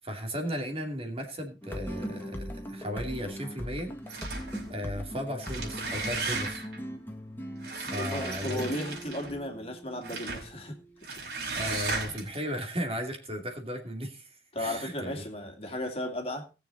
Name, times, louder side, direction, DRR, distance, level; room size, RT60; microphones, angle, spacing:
voice 1, 0.0-3.9 4.7-6.6 7.7-8.7 11.5-15.1, equal, 35° right, 3 dB, 2.7 m, -35 dB
sound 1, 1.6-11.0, equal, 10° left, 1.8 m, -40 dB
sound 2, 4.1-4.7 5.3-6.8 7.6-9.4 10.0-10.5 11.0-12.4, right 3 dB, 65° right, 5.0 m, -35 dB
voice 2, 8.0-10.8 11.1-11.2 12.0-12.1 14.5-16.5, left 1 dB, 35° left, 4 dB, 2.5 m, -35 dB
19.5 x 7.2 x 4.0 m, 0.30 s
head